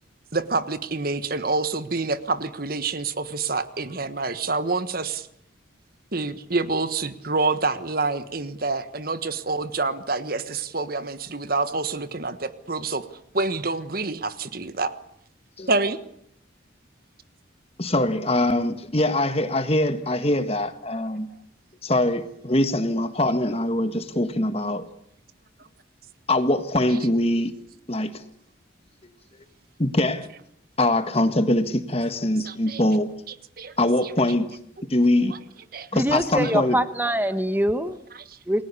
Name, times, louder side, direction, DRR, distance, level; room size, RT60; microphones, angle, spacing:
voice 1, 0.3-5.3 6.1-13.1 13.3-14.9 15.7-16.0 32.5-32.8 33.6-33.7 35.7-35.9 36.4-36.5 38.1-38.4, right 3 dB, 45° right, 12 dB, 1.4 m, -27 dB
voice 2, 17.8-21.3 21.8-24.9 26.3-27.5 27.9-28.2 29.8-30.3 30.8-33.1 33.8-34.6 34.9-35.3 35.9-36.8, left 1 dB, 30° left, 10 dB, 1.6 m, -23 dB
voice 3, 35.9-38.0 38.5-38.6, right 1 dB, 10° right, 11 dB, 1.3 m, -23 dB
29.0 x 20.0 x 8.4 m, 0.71 s
head